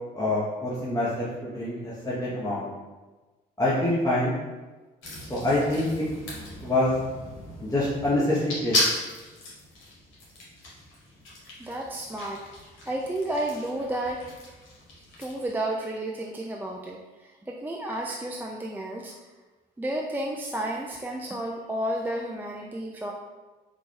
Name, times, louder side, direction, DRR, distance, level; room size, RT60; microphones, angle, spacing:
voice 1, 0.1-2.7 3.6-4.4 5.3-6.0 6.6-7.0 7.6-8.8, left 1 dB, 15° left, -8 dB, 0.9 m, -26 dB
sound 1, 5.0-15.5, left 1 dB, 70° left, 1.3 m, -35 dB
voice 2, 11.6-12.4 12.9-14.2 15.2-19.1 19.8-23.1, right 1 dB, 10° right, -2 dB, 0.4 m, -32 dB
3.7 x 2.4 x 3.2 m, 1.2 s
hypercardioid pair, 55°, 21 cm